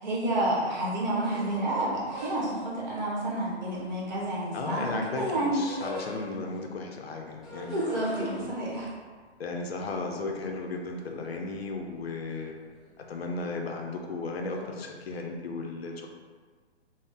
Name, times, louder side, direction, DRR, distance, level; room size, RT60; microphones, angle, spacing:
voice 1, 0.0-5.6 7.7-8.9, right 1 dB, 40° right, -5 dB, 0.9 m, -29 dB
sound 1, 1.1-2.8 3.5-4.8 5.1-6.6 7.3-11.0 11.3-12.0 12.3-12.9 13.2-13.4 14.5-14.9, left 1 dB, ahead, 0.6 m, -43 dB
voice 2, 4.5-7.8 9.4-12.6 13.1-16.1, left 3 dB, 60° left, 2 dB, 0.5 m, -35 dB
2.5 x 2.0 x 3.5 m, 1.5 s
figure-of-eight pair, 130°, 34 cm